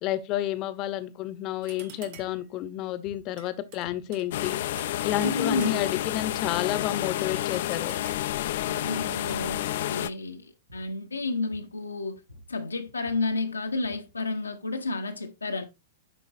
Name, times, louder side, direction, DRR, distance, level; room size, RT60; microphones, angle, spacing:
voice 1, 0.0-4.6 5.0-7.9, left 12 dB, 40° left, 0.8 m, -30 dB
sound 1, 1.6-2.5 3.4-5.0 5.2-6.1 7.0-8.4 9.3-9.7, right 8 dB, 50° right, 1.0 m, -50 dB
sound 2, 2.1-2.4 3.0-3.3 3.8-4.4 4.7-5.2 5.6-5.9 6.3-6.8 7.2-7.6 7.9-8.4 8.9-9.3 9.7-10.0 10.7-11.0 11.5-11.9 12.2-14.2, left 2 dB, 85° right, 1.7 m, -52 dB
sound 3, 4.3-10.1, left 13 dB, 60° left, 0.4 m, -30 dB
voice 2, 5.2-5.9 8.6-9.6 9.9-12.2 12.5-15.6, left 3 dB, 85° left, 0.9 m, -31 dB
11.0 x 3.8 x 2.6 m
figure-of-eight pair, 105°, 0 cm